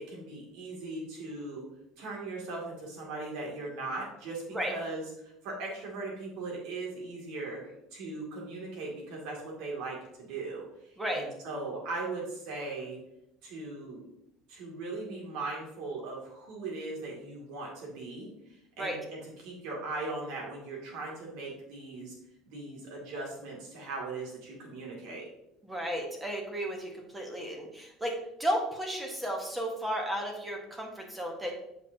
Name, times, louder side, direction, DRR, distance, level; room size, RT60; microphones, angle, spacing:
voice 1, 0.0-1.6 2.0-13.0 13.4-14.0 14.5-18.3 18.8-22.1 22.5-25.2, right 3 dB, 75° right, -2 dB, 2.7 m, -39 dB
voice 2, 25.7-31.5, equal, 10° right, 1 dB, 1.4 m, -33 dB
7.9 x 5.4 x 2.9 m, 0.82 s
cardioid pair, 140°, 0 cm